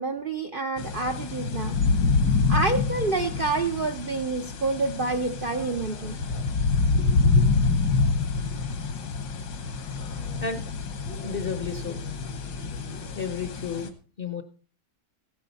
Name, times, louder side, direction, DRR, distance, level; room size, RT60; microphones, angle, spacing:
voice 1, 0.0-1.8 2.5-6.2 6.9-7.4, right 3 dB, 65° right, 5 dB, 0.5 m, -28 dB
sound 1, 0.8-13.9, left 4 dB, 75° left, 2.0 m, -26 dB
voice 2, 11.2-12.0 13.2-13.9 14.2-14.4, left 6 dB, 45° left, 8 dB, 0.7 m, -32 dB
16.0 x 10.0 x 4.1 m, 0.40 s
omnidirectional pair, 2.0 m